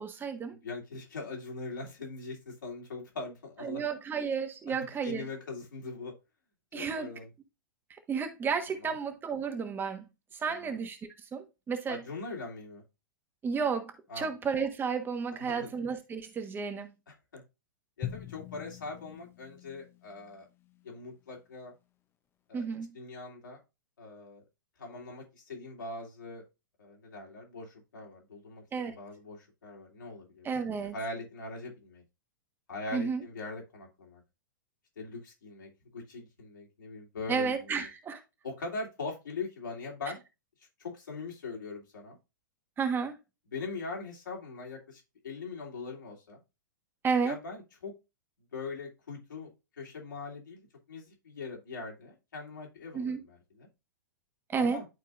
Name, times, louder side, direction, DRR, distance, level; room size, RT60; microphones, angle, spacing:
voice 1, 0.0-0.6 3.6-5.3 6.7-7.1 7.9-12.0 13.4-16.9 22.5-22.9 28.7-28.9 30.4-30.9 32.9-33.2 37.3-38.2 42.8-43.2 47.0-47.4 52.9-53.2 54.5-54.8, right 5 dB, 20° right, 1.3 m, -32 dB
voice 2, 0.6-3.8 4.7-4.8 5.0-6.1 6.7-7.3 8.8-9.0 10.5-10.8 11.9-12.8 14.1-14.3 15.5-15.7 17.3-17.4 18.0-20.4 20.8-21.7 22.5-22.6 22.9-23.6 24.0-24.4 24.8-26.4 26.8-30.5 30.9-32.0 32.7-34.2 35.0-37.9 38.4-40.2 40.8-42.2 43.5-46.4 47.2-47.9 48.5-49.5 49.8-53.7 54.5-54.9, left 3 dB, 75° left, 3.0 m, -41 dB
Drum, 18.0-21.0, left 11 dB, 20° left, 0.8 m, -44 dB
11.5 x 4.5 x 2.5 m
figure-of-eight pair, 105°, 11 cm